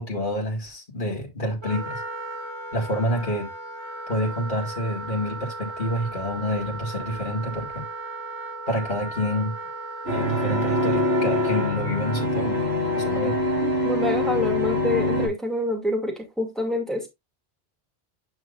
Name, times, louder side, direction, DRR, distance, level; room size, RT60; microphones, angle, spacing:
voice 1, 0.0-2.0 2.7-3.5 4.1-7.8 8.7-9.5 10.0-12.6 13.0-13.4, left 1 dB, 50° left, 2.5 m, -28 dB
Wind instrument woodwind instrument, 1.6-12.3, right 2 dB, 25° right, 1.8 m, -36 dB
sound 1, 10.1-15.3, left 1 dB, 75° right, 6.0 m, -24 dB
voice 2, 13.6-17.1, left 1 dB, ahead, 2.4 m, -27 dB
9.6 x 6.2 x 2.5 m
omnidirectional pair, 1.1 m